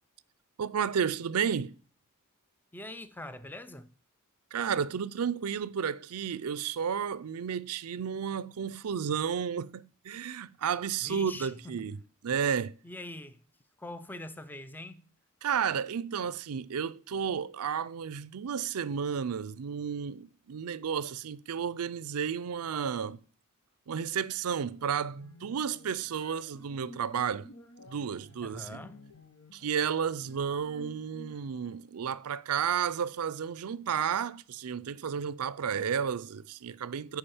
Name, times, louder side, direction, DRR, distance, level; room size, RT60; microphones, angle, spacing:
voice 1, 0.6-1.8 4.5-12.0 12.2-12.8 15.4-23.2 23.9-27.5 27.9-28.8 29.5-37.2, right 7 dB, 80° right, 0.5 m, -32 dB
voice 2, 2.7-3.9 11.0-11.9 12.8-13.4 13.8-15.0 28.4-29.0, left 1 dB, 10° left, 0.5 m, -43 dB
sound 1, 24.6-31.7, left 1 dB, 70° left, 1.2 m, -53 dB
8.7 x 4.9 x 7.1 m
head